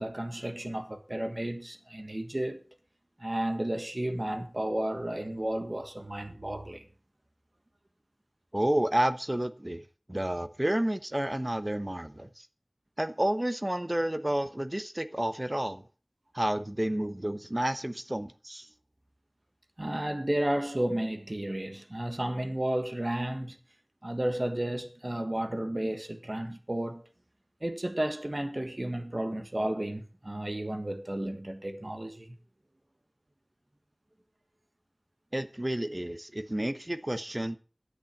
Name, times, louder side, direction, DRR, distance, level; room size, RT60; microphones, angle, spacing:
voice 1, 0.0-2.6 3.2-6.8 19.8-23.6 24.0-27.0 27.6-32.4, right 1 dB, 50° right, 1.5 m, -32 dB
voice 2, 8.5-12.5 13.0-15.8 16.3-18.7 35.3-37.6, right 1 dB, 30° right, 0.9 m, -30 dB
10.0 x 8.8 x 5.9 m
wide cardioid pair, 40°, 0 cm